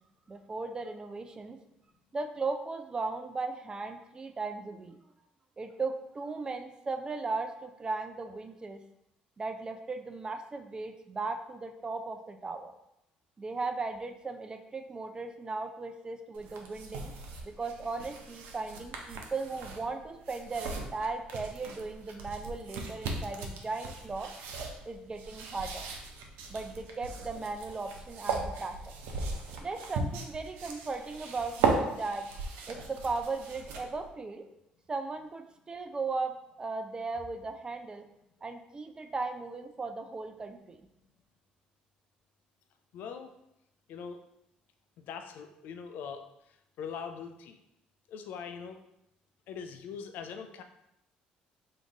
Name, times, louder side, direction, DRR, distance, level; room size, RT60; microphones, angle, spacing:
voice 1, 0.3-1.6 2.1-5.0 5.6-8.8 9.4-12.7 13.4-17.1 17.4-24.3 24.9-25.9 26.5-28.8 29.6-32.3 32.7-34.5 34.9-38.1 38.4-40.8, right 3 dB, 25° right, 7 dB, 0.4 m, -37 dB
sound 1, 16.3-34.1, right 4 dB, 85° right, 0.5 m, -37 dB
voice 2, 42.9-43.3 43.9-44.2 45.0-46.3 46.8-47.6 48.1-48.8 49.5-50.6, left 6 dB, 70° left, 7 dB, 0.4 m, -41 dB
3.8 x 2.6 x 3.5 m, 0.84 s
supercardioid pair, 80°, 3 cm